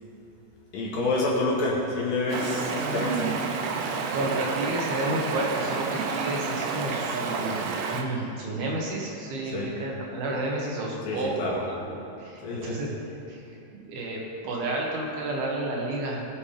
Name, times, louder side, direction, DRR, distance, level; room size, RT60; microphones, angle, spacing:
voice 1, 0.7-3.4 9.5-9.7 11.0-11.6 12.4-12.8, left 2 dB, 65° left, -4 dB, 2.6 m, -28 dB
Stream, 2.3-8.0, right 5 dB, 85° right, 3.0 m, -30 dB
voice 2, 4.1-12.9 13.3-16.4, right 2 dB, 70° right, -2 dB, 2.9 m, -31 dB
20.0 x 7.1 x 3.4 m, 2.8 s
omnidirectional pair, 5.1 m